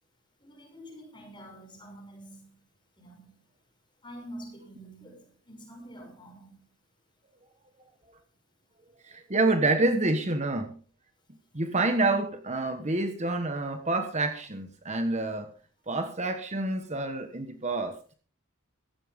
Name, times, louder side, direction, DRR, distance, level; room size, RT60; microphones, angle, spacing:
voice 1, 0.4-2.6 3.0-3.4 4.0-6.6, right 1 dB, 20° left, 6.4 m, -47 dB
voice 2, 9.0-10.8 11.5-15.5 15.9-18.0, right 2 dB, 30° right, 1.4 m, -28 dB
16.0 x 15.5 x 3.7 m
head